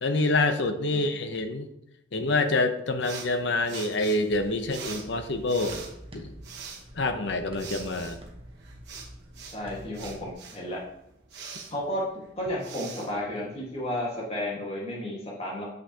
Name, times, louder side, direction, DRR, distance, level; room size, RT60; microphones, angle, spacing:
voice 1, 0.0-1.7 2.1-5.8 6.1-6.3 6.9-8.2, left 2 dB, 60° left, 8 dB, 0.7 m, -26 dB
sound 1, 3.0-14.0, right 5 dB, 60° right, 1.2 m, -44 dB
sound 2, 4.3-10.3, equal, 30° right, 1.0 m, -47 dB
voice 2, 9.5-10.8 11.7-12.0 12.4-15.7, left 1 dB, 30° left, -4 dB, 1.6 m, -32 dB
7.5 x 6.0 x 2.8 m, 0.80 s
head